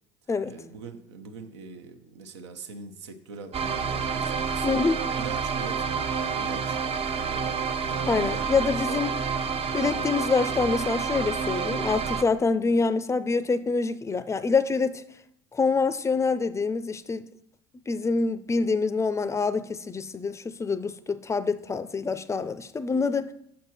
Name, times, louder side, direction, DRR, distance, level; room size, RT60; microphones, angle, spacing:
voice 1, 0.4-4.8 5.2-9.1 9.9-10.1, right 4 dB, 85° right, 0.7 m, -43 dB
sound 1, 3.5-12.2, right 6 dB, 45° right, 0.6 m, -29 dB
voice 2, 4.6-5.1 8.0-9.1 9.7-15.0 15.5-17.3 17.9-23.3, left 4 dB, 20° left, 0.4 m, -26 dB
6.5 x 5.6 x 4.2 m
hypercardioid pair, 65°, 14 cm